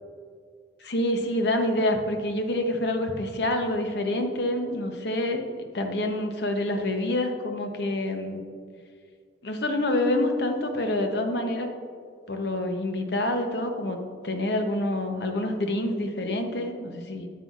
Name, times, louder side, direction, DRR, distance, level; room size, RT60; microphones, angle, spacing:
voice 1, 0.8-8.4 9.4-11.7 12.3-14.0 14.2-17.3, left 1 dB, 60° left, 5 dB, 0.8 m, -27 dB
9.3 x 7.5 x 2.4 m, 2.1 s
head